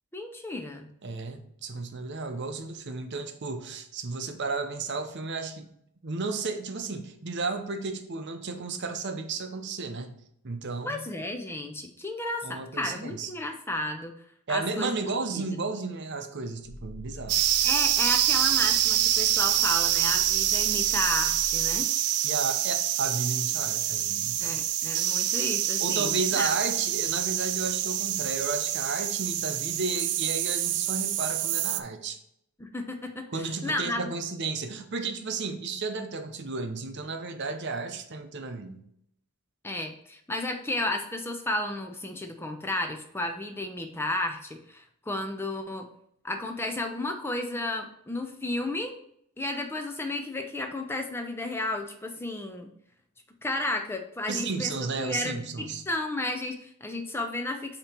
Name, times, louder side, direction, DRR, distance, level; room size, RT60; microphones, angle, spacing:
voice 1, 0.1-0.9 10.8-14.1 14.5-15.0 15.3-15.4 17.6-21.9 24.4-26.5 32.6-34.1 39.6-45.9 46.2-48.9 49.4-52.7 53.4-57.8, left 1 dB, 10° left, 4 dB, 0.4 m, -33 dB
voice 2, 1.0-5.7 6.0-10.1 10.4-11.0 12.4-13.3 14.5-17.4 22.2-24.6 25.8-32.2 33.3-38.8 54.3-55.8, right 4 dB, 50° right, 7 dB, 0.7 m, -33 dB
sound 1, 16.6-21.9, left 1 dB, 70° left, 1.4 m, -45 dB
sound 2, 17.3-31.8, right 12 dB, 90° right, 0.4 m, -26 dB
8.5 x 2.9 x 4.4 m, 0.72 s
head